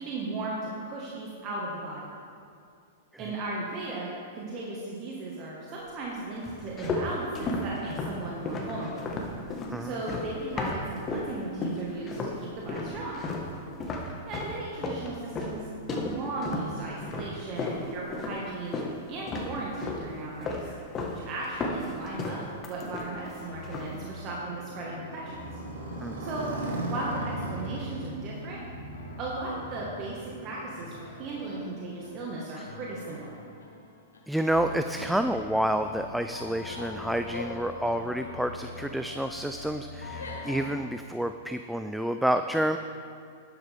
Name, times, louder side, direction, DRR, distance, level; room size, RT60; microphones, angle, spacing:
voice 1, 0.0-2.0 3.2-9.1 9.8-13.1 14.3-15.6 15.9-18.8 19.1-20.5 21.1-25.4 26.2-26.5 26.8-28.6 29.2-33.4, right 2 dB, 40° right, -4 dB, 1.7 m, -36 dB
sound 1, 6.4-11.3 11.6-12.4 12.7-19.0 19.3-20.1 20.4-21.2 21.4-23.3 23.6-24.0, left 2 dB, 25° left, 1.5 m, -33 dB
Motorcycle, 22.7-32.3, right 1 dB, 75° right, 1.8 m, -38 dB
sound 2, 23.4-40.8, left 3 dB, 85° left, 1.4 m, -43 dB
voice 2, 34.3-42.8, right 1 dB, ahead, 7 dB, 0.3 m, -29 dB
11.5 x 9.3 x 3.6 m, 2.4 s
hypercardioid pair, 110°, 0 cm